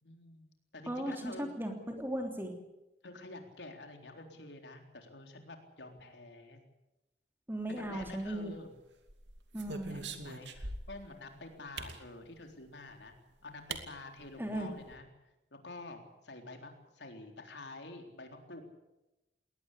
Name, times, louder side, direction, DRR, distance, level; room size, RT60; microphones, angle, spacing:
voice 1, 0.0-0.5 0.7-1.5 3.0-6.6 7.7-8.7 9.6-13.1 13.4-15.1 15.5-18.6, left 2 dB, 80° left, 4 dB, 3.9 m, -48 dB
voice 2, 0.9-2.5 7.5-8.5 9.5-10.0 14.4-14.7, right 1 dB, 10° right, 3 dB, 3.3 m, -37 dB
sound 1, 7.9-8.6 9.1-11.1 11.8-12.0 13.1-13.2 13.7-13.8 14.2-14.3 14.5-15.0, right 3 dB, 85° right, 2.6 m, -43 dB
21.5 x 19.0 x 8.5 m, 0.95 s
head